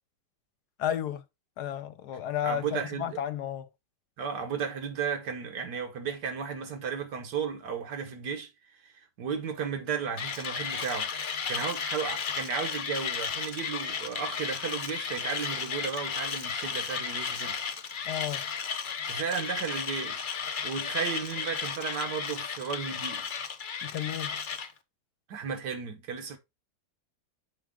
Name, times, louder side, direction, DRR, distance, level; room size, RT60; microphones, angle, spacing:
voice 1, 0.8-1.2 1.6-3.7 18.1-18.4 23.8-24.4, left 10 dB, 75° left, 1.2 m, -32 dB
voice 2, 2.4-3.2 4.2-8.5 8.8-17.6 19.0-20.3 20.6-23.3 25.3-26.4, right 6 dB, 75° right, 1.7 m, -34 dB
Mechanisms, 10.2-24.7, left 6 dB, 90° left, 0.4 m, -34 dB
6.4 x 4.7 x 3.6 m
omnidirectional pair, 1.9 m